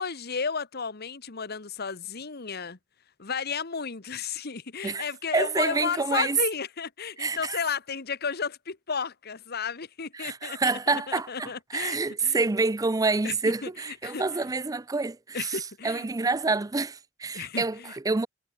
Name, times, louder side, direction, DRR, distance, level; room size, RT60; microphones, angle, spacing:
voice 1, 0.0-2.8 3.2-12.4 13.2-13.3 13.6-14.5 15.3-16.1 17.3-17.9, left 5 dB, 55° left, 1.3 m, -33 dB
voice 2, 5.3-6.4 7.2-7.6 10.1-18.3, right 3 dB, 20° right, 0.5 m, -28 dB
head